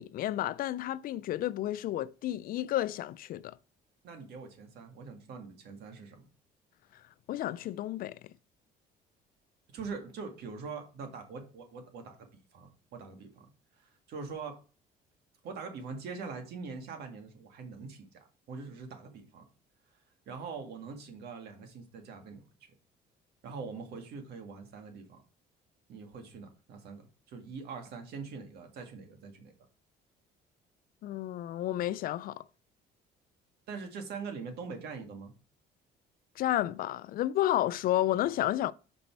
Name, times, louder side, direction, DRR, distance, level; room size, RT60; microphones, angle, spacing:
voice 1, 0.0-3.5 7.3-8.2 31.0-32.4 36.4-38.7, left 13 dB, 60° left, 0.4 m, -31 dB
voice 2, 4.0-6.3 9.7-13.5 13.8-14.6 15.4-19.5 20.3-22.4 23.4-25.2 25.9-29.5 33.7-35.3, right 5 dB, 75° right, 1.7 m, -43 dB
5.3 x 5.3 x 4.5 m
cardioid pair, 110°, 17 cm